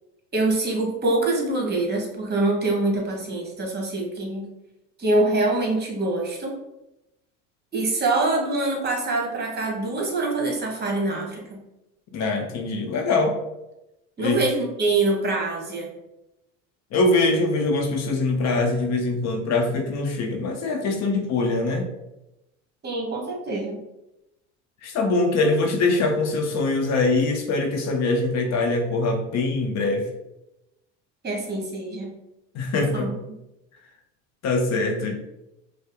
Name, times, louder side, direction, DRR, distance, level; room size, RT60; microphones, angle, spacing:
voice 1, 0.3-4.5 5.0-6.5 7.7-11.6 14.2-15.9 22.8-23.8 31.2-32.1 32.7-33.2, right 2 dB, 25° right, 0 dB, 1.3 m, -25 dB
voice 2, 12.1-13.4 14.2-14.4 16.9-21.9 24.8-30.1 32.5-33.1 34.4-35.2, left 3 dB, 45° left, 3 dB, 0.7 m, -23 dB
5.2 x 2.1 x 3.8 m, 0.94 s
hypercardioid pair, 80°, 37 cm